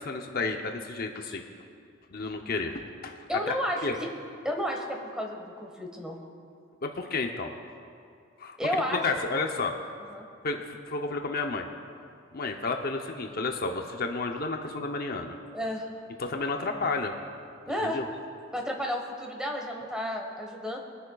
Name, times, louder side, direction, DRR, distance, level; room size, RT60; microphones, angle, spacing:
voice 1, 0.0-1.4 2.1-3.2 3.5-3.6 3.8-4.0 6.8-7.5 8.4-8.6 8.9-9.7 10.4-11.7 12.3-15.4 16.2-17.1 17.8-18.0, left 3 dB, 50° left, 4 dB, 0.7 m, -31 dB
voice 2, 3.3-4.1 4.4-6.2 8.6-9.0 10.1-10.3 15.5-15.8 17.7-18.0 18.5-20.8, equal, 5° right, 1 dB, 1.2 m, -32 dB
23.0 x 10.5 x 2.3 m, 2.4 s
head